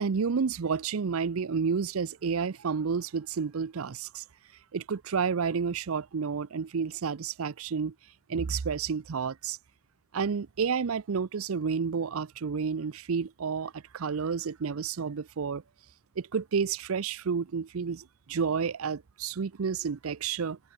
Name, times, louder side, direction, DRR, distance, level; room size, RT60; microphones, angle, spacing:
voice 1, 0.0-4.2 4.7-7.9 8.3-9.6 10.1-15.6 16.2-20.6, right 6 dB, 85° right, 0.6 m, -30 dB
head